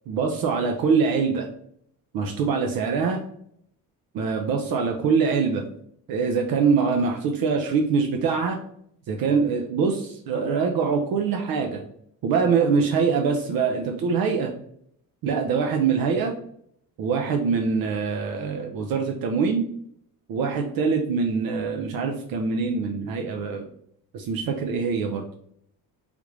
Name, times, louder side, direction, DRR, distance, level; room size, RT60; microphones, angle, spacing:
voice 1, 0.1-1.5 2.1-3.2 4.1-5.6 6.1-8.6 9.1-11.8 12.2-14.5 15.2-16.3 17.0-19.6 20.3-23.7 24.1-25.2, right 5 dB, 70° right, 2 dB, 0.5 m, -24 dB
3.3 x 2.4 x 3.1 m, 0.69 s
cardioid pair, 130°, 36 cm